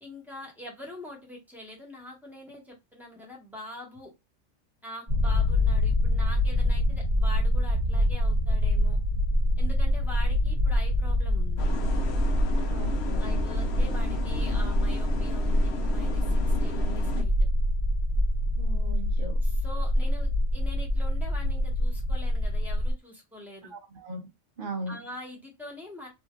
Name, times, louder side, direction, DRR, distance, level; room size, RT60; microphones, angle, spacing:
voice 1, 0.0-4.1 4.8-9.0 9.6-11.7 13.1-17.3 19.4-23.7 24.9-26.1, left 1 dB, ahead, 1.3 m, -44 dB
sound 1, 5.1-22.9, left 1 dB, 35° right, 1.2 m, -25 dB
sound 2, 11.6-17.2, left 2 dB, 65° left, 0.9 m, -36 dB
voice 2, 12.7-13.3 18.6-19.4 23.7-24.2 24.6-25.0, right 2 dB, 50° right, 0.9 m, -38 dB
3.6 x 2.7 x 2.4 m
omnidirectional pair, 1.3 m